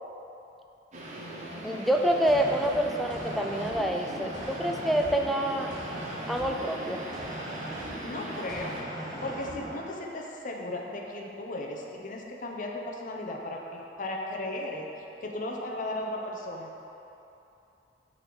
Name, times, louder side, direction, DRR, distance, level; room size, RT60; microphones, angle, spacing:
sound 1, 0.9-8.8, right 1 dB, 40° right, 0.9 m, -41 dB
voice 1, 1.6-5.7 6.3-7.0, right 1 dB, ahead, 2 dB, 0.4 m, -27 dB
sound 2, 2.2-9.8, right 1 dB, 25° right, 1.2 m, -39 dB
voice 2, 8.0-8.8 9.2-14.9 15.2-16.7, left 1 dB, 50° left, 0 dB, 0.7 m, -36 dB
6.2 x 3.9 x 6.1 m, 2.8 s
head